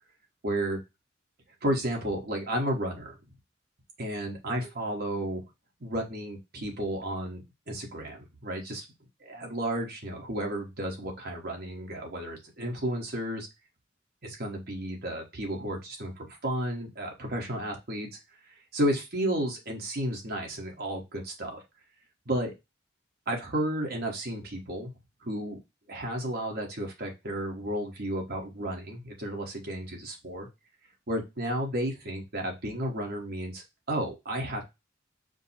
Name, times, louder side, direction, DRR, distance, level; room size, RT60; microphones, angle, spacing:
voice 1, 0.4-0.8 1.6-3.2 4.0-5.4 5.8-8.8 9.2-13.5 14.2-18.1 18.7-21.6 22.3-22.5 23.3-24.9 25.2-25.6 25.9-30.5 31.1-34.6, right 1 dB, 55° right, 1 dB, 1.2 m, -32 dB
5.0 x 2.1 x 4.2 m, 0.23 s
head